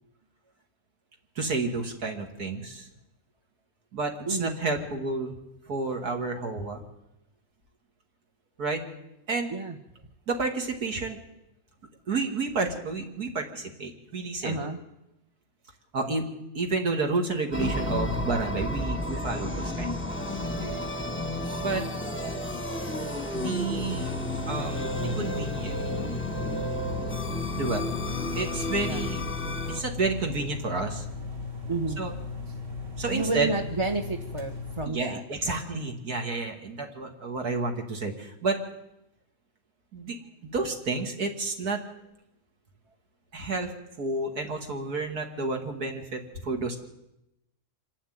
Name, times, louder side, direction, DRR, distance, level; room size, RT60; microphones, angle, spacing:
voice 1, 1.4-2.9 3.9-5.4 5.7-6.8 8.6-8.8 9.3-9.5 10.3-11.2 12.1-14.6 15.9-16.3 16.5-19.9 21.6-21.8 23.3-24.1 24.5-25.8 27.5-27.8 28.3-29.2 29.7-31.0 32.0-32.1 33.0-33.5 34.9-38.6 39.9-40.2 40.4-41.8 43.3-43.7 44.0-46.8, right 3 dB, 70° right, 3 dB, 2.7 m, -30 dB
voice 2, 4.2-4.6 9.5-9.8 14.4-14.8 20.6-20.8 28.8-29.1 31.7-32.0 32.5-32.6 33.1-35.9, right 3 dB, 25° right, 3 dB, 0.9 m, -32 dB
sound 1, 17.5-29.8, left 1 dB, 10° left, 1.2 m, -32 dB
sound 2, 23.7-34.9, left 4 dB, 50° right, 2.2 m, -37 dB
25.5 x 11.5 x 9.4 m, 0.88 s
omnidirectional pair, 1.7 m